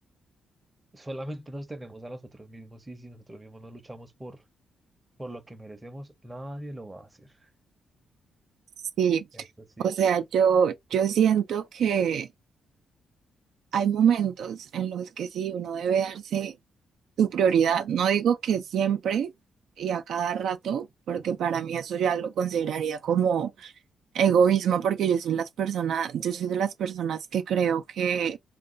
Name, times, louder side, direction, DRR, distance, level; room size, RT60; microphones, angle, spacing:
voice 1, 0.9-4.4 5.2-7.5 9.3-9.9, right 1 dB, 15° right, 0.6 m, -41 dB
voice 2, 9.8-12.3 13.7-16.5 17.2-19.3 19.8-23.7 24.1-28.4, right 8 dB, 75° right, 0.4 m, -25 dB
2.5 x 2.3 x 3.7 m
cardioid pair, 135°, 0 cm